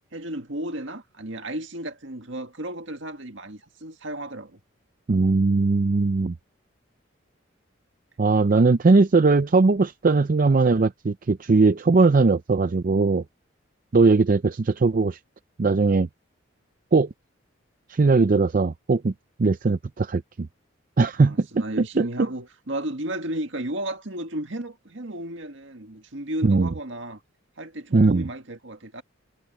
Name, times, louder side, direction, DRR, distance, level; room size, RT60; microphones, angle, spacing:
voice 1, 0.0-4.6 21.1-27.2 27.6-29.0, right 1 dB, 65° right, 2.0 m, -34 dB
voice 2, 5.1-6.3 8.2-13.2 13.9-15.2 15.6-16.1 16.9-17.1 17.9-19.1 19.4-20.5 21.0-21.5 22.0-22.3 26.4-26.7 27.9-28.3, right 3 dB, 45° right, 0.5 m, -19 dB
head